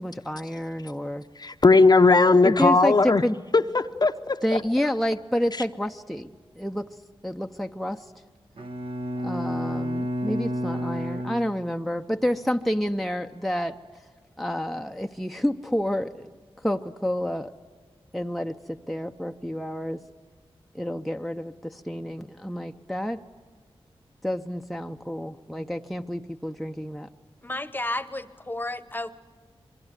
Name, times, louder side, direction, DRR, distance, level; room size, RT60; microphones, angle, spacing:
voice 1, 0.0-1.3 2.4-3.4 4.4-6.9 7.2-8.1 9.2-13.8 14.4-16.3 16.6-17.5 18.1-20.0 20.7-23.2 24.2-27.1, equal, ahead, 5 dB, 0.6 m, -29 dB
voice 2, 1.4-3.2 3.5-4.4, left 3 dB, 40° left, 7 dB, 0.7 m, -18 dB
Bowed string instrument, 8.6-12.1, equal, 65° right, 1.2 m, -31 dB
voice 3, 27.4-29.1, left 1 dB, 20° left, 13 dB, 1.0 m, -32 dB
25.5 x 22.5 x 8.2 m, 1.5 s
cardioid pair, 60°, 10 cm